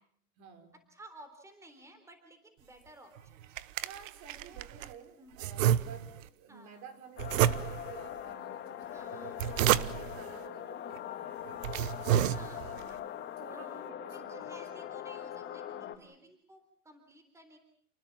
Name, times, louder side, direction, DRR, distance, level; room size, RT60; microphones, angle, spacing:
voice 1, 0.4-0.8 3.8-11.7 12.0-13.0 13.4-14.9 15.7-16.1, right 6 dB, 40° right, 6 dB, 4.8 m, -52 dB
voice 2, 0.9-3.6 4.5-4.9 5.2-5.4 6.5-6.8 8.9-9.4 12.3-13.0 13.5-13.8 14.1-17.6, right 1 dB, 5° right, 7 dB, 3.7 m, -55 dB
sound 1, 3.2-4.9 5.4-6.3 7.2-8.0 9.1-10.2 11.0-11.1 11.5-12.8, right 11 dB, 60° right, 1.1 m, -30 dB
sound 2, 7.2-16.0, left 10 dB, 25° left, 1.8 m, -42 dB
29.5 x 19.5 x 7.4 m, 0.64 s
hypercardioid pair, 135°, 44 cm